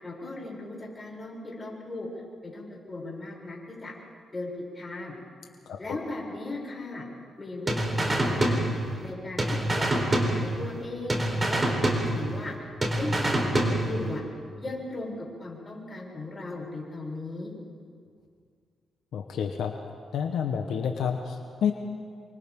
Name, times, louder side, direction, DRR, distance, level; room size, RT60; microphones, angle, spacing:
voice 1, 0.0-2.1 2.4-3.9 4.3-5.2 5.8-7.1 7.4-8.7 9.0-11.2 11.5-12.7 13.0-14.2 14.6-17.5, left 2 dB, 25° left, -3 dB, 7.5 m, -37 dB
voice 2, 5.7-6.0 19.1-19.7 20.1-21.7, left 7 dB, 80° left, 4 dB, 1.2 m, -29 dB
sound 1, 7.7-9.1 9.4-10.8 11.1-12.5 12.8-14.1, right 1 dB, 25° right, 4.1 m, -26 dB
28.5 x 24.0 x 3.8 m, 2.1 s
cardioid pair, 85°, 0 cm